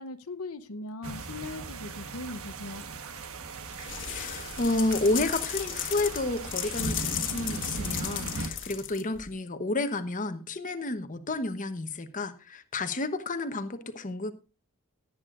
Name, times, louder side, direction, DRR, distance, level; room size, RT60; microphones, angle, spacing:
voice 1, 0.0-2.8, left 2 dB, 75° left, 0.8 m, -39 dB
sound 1, 1.0-8.5, right 3 dB, 70° right, 1.3 m, -38 dB
sound 2, 3.7-9.3, left 10 dB, 60° left, 1.5 m, -35 dB
voice 2, 4.1-14.3, left 2 dB, 35° left, 1.0 m, -31 dB
17.5 x 9.6 x 2.5 m
head